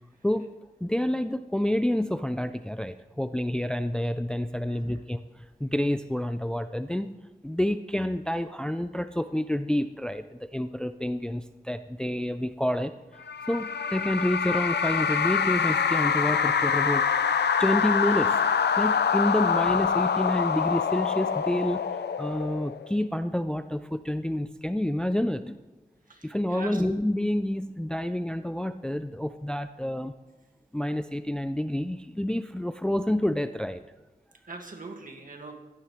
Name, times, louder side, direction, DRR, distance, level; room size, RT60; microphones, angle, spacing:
voice 1, 0.8-7.2 7.4-12.9 13.5-17.1 17.6-18.4 18.8-21.9 22.2-25.6 26.2-30.1 30.7-33.8, left 1 dB, 5° left, 11 dB, 0.4 m, -28 dB
voice 2, 4.7-5.0 26.1-26.8 34.5-35.5, right 3 dB, 55° right, 2 dB, 1.9 m, -42 dB
sound 1, 13.3-22.9, left 6 dB, 85° left, 0.5 m, -25 dB
16.0 x 13.0 x 3.2 m, 1.2 s
wide cardioid pair, 90°, 17 cm